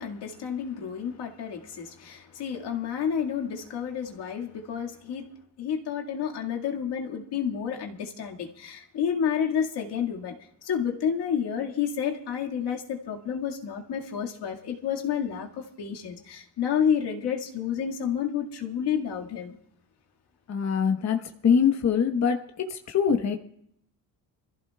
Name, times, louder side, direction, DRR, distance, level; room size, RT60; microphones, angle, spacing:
voice 1, 0.0-5.3 5.6-10.4 10.6-19.6, left 8 dB, 65° left, 1.9 m, -30 dB
voice 2, 20.5-23.4, left 7 dB, 40° left, 1.1 m, -24 dB
26.0 x 15.0 x 2.3 m
cardioid pair, 95°, 43 cm